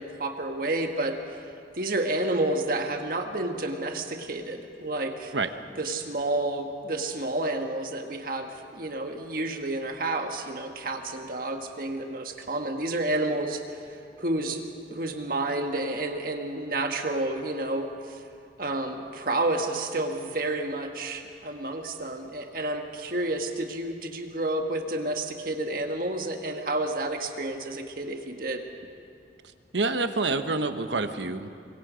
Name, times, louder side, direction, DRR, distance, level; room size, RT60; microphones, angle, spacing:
voice 1, 0.0-1.4 1.7-5.3 5.8-13.8 14.2-18.2 18.6-28.6, right 2 dB, 55° right, 4 dB, 1.5 m, -30 dB
voice 2, 29.4-31.5, right 3 dB, 90° right, 9 dB, 1.1 m, -28 dB
25.5 x 23.0 x 5.1 m, 2.5 s
head